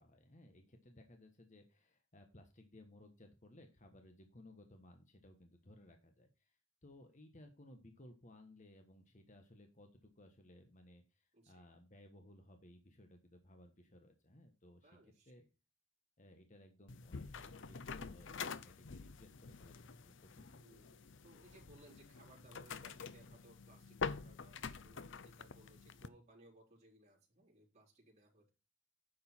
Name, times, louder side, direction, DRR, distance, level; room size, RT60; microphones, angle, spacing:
voice 1, 0.0-15.0 15.2-15.4 16.2-20.6, left 1 dB, 35° left, 5 dB, 1.3 m, -60 dB
voice 2, 11.3-11.7 14.8-15.5 20.5-28.5, right 1 dB, 30° right, -4 dB, 4.0 m, -64 dB
sound 1, 16.9-26.1, left 5 dB, 60° left, 0.6 m, -47 dB
9.8 x 6.6 x 4.4 m, 0.30 s
head